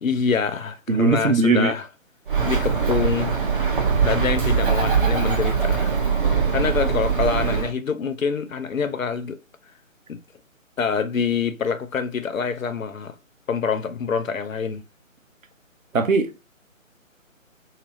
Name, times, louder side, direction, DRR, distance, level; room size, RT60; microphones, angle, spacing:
voice 1, 0.0-1.8 2.4-3.4 4.0-5.9 6.5-9.4 10.1-10.2 10.8-13.1 13.5-14.8, left 6 dB, 75° left, 0.6 m, -25 dB
voice 2, 0.9-1.7 6.5-6.6 15.9-16.3, right 4 dB, 75° right, 0.9 m, -19 dB
Bird, 2.3-7.7, right 6 dB, 40° right, 0.9 m, -22 dB
3.2 x 2.9 x 2.8 m
figure-of-eight pair, 145°, 40 cm